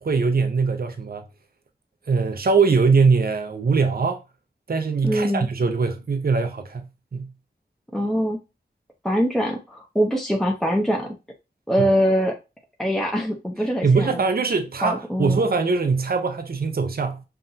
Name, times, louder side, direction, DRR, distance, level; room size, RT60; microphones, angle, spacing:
voice 1, 0.0-1.2 2.1-4.2 4.7-7.3 11.8-11.9 13.8-17.2, right 4 dB, 60° right, 0.6 m, -22 dB
voice 2, 5.0-5.5 7.9-8.4 9.0-11.1 11.7-12.4 12.8-14.2 14.8-15.4, equal, ahead, 0.8 m, -23 dB
5.5 x 2.5 x 2.8 m
wide cardioid pair, 50°, 18 cm